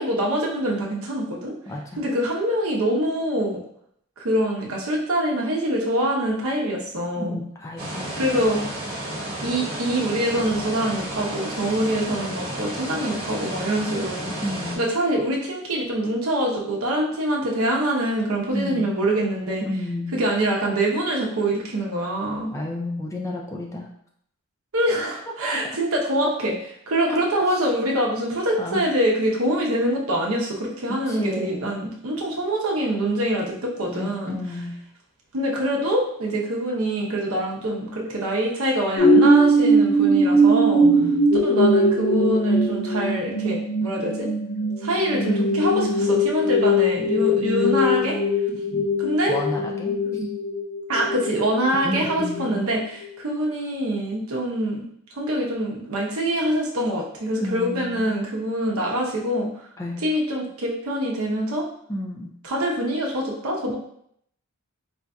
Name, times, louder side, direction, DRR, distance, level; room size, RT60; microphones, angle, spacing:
voice 1, 0.0-1.5 2.0-3.6 4.2-7.4 8.2-8.6 9.4-14.3 14.8-19.7 20.1-22.5 24.7-26.6 26.9-34.4 35.3-40.9 41.4-44.3 44.8-48.2 49.0-49.4 50.0-50.3 50.9-54.9 55.2-59.5 60.0-61.6 62.4-63.7, right 1 dB, 80° right, -2 dB, 0.8 m, -24 dB
voice 2, 1.7-2.0 7.2-8.2 14.4-14.8 18.5-18.8 19.6-20.1 22.5-23.9 27.1-27.2 27.5-27.6 28.6-28.8 31.1-31.7 33.9-34.8 40.8-41.3 47.2-47.3 48.5-48.9 49.3-50.0 51.8-52.6 57.4-58.1 59.8-60.0 61.9-62.3, left 1 dB, 15° left, -1 dB, 0.4 m, -31 dB
sound 1, 7.8-14.8, right 1 dB, 50° right, 1.1 m, -32 dB
sound 2, 39.0-52.5 53.0-53.1, right 1 dB, 75° left, 1.0 m, -20 dB
4.5 x 2.6 x 2.3 m, 0.68 s
head